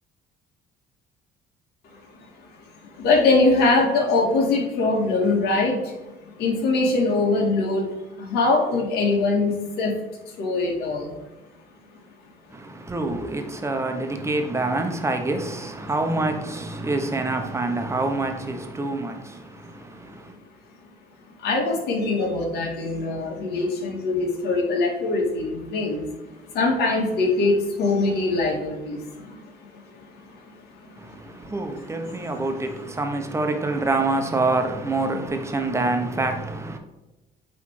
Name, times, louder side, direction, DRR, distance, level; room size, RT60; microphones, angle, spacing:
voice 1, 3.0-10.0 10.4-11.1 21.4-26.1 26.5-29.4 29.7-29.8 31.9-32.3, left 3 dB, 75° left, 2.2 m, -22 dB
voice 2, 12.5-20.3 31.0-36.8, right 2 dB, 15° right, 1.1 m, -26 dB
8.3 x 3.6 x 4.6 m
cardioid pair, 110°, 17 cm